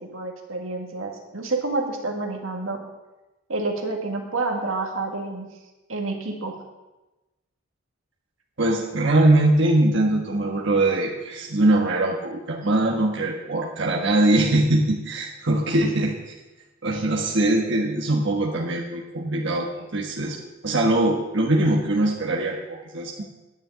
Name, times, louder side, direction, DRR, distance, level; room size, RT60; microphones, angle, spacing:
voice 1, 0.1-2.8 3.5-5.5 5.9-6.6 16.0-16.1, right 3 dB, 85° right, 2 dB, 1.9 m, -28 dB
voice 2, 8.6-16.1 16.8-20.4 20.6-23.2, right 1 dB, 60° right, -2 dB, 1.4 m, -22 dB
10.5 x 6.5 x 8.7 m, 1.1 s
head